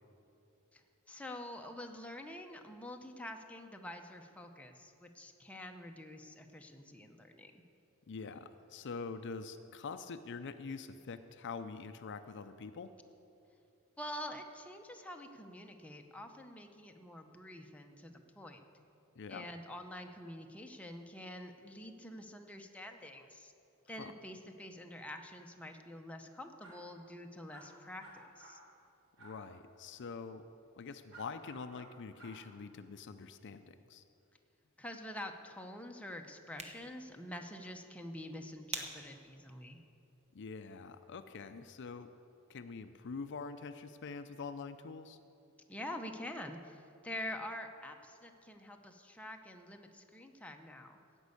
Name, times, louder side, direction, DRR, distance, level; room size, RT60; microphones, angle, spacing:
voice 1, 1.1-7.6 14.0-18.6 19.3-23.5 23.9-28.6 34.8-39.8 45.7-51.0, left 1 dB, 5° left, 3 dB, 0.7 m, -47 dB
voice 2, 8.1-12.9 19.2-19.5 24.0-24.1 29.2-30.4 30.8-34.0 40.3-42.1 42.5-45.2, left 4 dB, 55° left, 10 dB, 0.5 m, -45 dB
sound 1, 26.6-26.8 27.5-27.7 28.0-28.6 29.2-29.3 31.1-31.8 32.2-32.3, right 2 dB, 65° right, 3.7 m, -55 dB
sound 2, 36.3-41.4, right 3 dB, 30° right, 1.1 m, -50 dB
16.0 x 5.4 x 8.3 m, 2.7 s
head